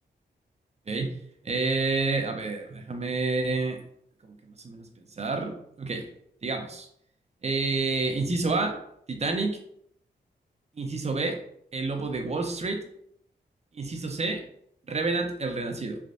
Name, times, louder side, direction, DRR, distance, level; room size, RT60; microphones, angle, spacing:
voice 1, 1.4-3.8 4.2-4.9 5.2-6.1 6.4-6.9 7.4-8.8 9.1-9.6 10.8-11.4 11.7-12.8 13.7-14.4 14.9-16.0, right 3 dB, 35° right, 3 dB, 0.6 m, -29 dB
3.3 x 2.5 x 2.6 m, 0.70 s
cardioid pair, 60°, 19 cm